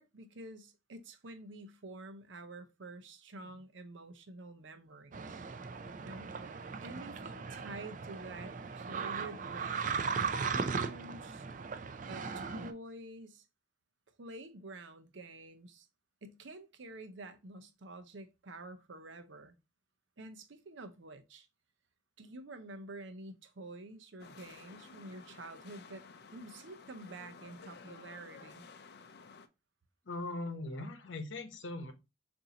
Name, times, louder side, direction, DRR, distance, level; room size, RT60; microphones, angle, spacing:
voice 1, 0.0-5.4 6.0-11.5 12.1-13.4 14.2-15.9 16.2-19.6 20.2-21.5 22.2-26.0 26.3-28.7, right 2 dB, 75° right, 0.7 m, -49 dB
sound 1, 5.1-12.7, right 5 dB, 40° right, 0.4 m, -38 dB
sound 2, 24.2-29.5, left 5 dB, 55° left, 0.5 m, -54 dB
voice 2, 30.0-31.9, left 2 dB, 75° left, 0.9 m, -40 dB
6.8 x 2.7 x 2.7 m
head